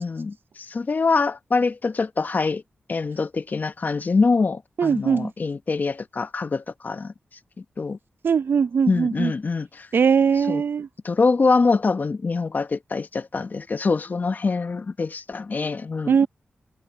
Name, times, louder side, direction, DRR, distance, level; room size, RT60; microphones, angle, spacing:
voice 1, 0.0-2.6 2.9-7.1 7.8-8.0 8.9-9.9 10.5-10.6 11.0-16.3, left 4 dB, 50° left, 0.9 m, -24 dB
voice 2, 4.8-5.3 8.2-9.3 9.9-10.9 16.1-16.3, right 6 dB, 70° right, 0.5 m, -20 dB
cardioid pair, 65°, 4 cm